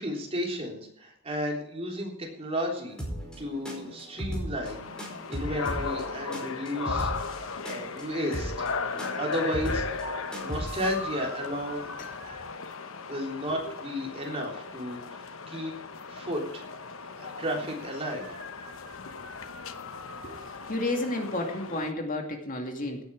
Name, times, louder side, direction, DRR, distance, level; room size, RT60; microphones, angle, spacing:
voice 1, 0.0-3.0 3.4-4.9 5.3-7.1 7.6-8.5 8.9-9.8 10.3-11.9 13.0-15.7 16.1-16.6 17.1-18.3, equal, 30° right, 0 dB, 3.6 m, -33 dB
sound 1, 2.9-10.9, right 1 dB, 5° left, 4.9 m, -37 dB
sound 2, 4.6-21.9, left 4 dB, 65° left, 1.1 m, -37 dB
sound 3, 10.5-12.5 18.2-20.9, left 2 dB, 90° left, 3.5 m, -44 dB
voice 2, 20.2-23.0, left 2 dB, 40° left, 3 dB, 2.4 m, -32 dB
17.5 x 9.3 x 4.8 m, 0.76 s
head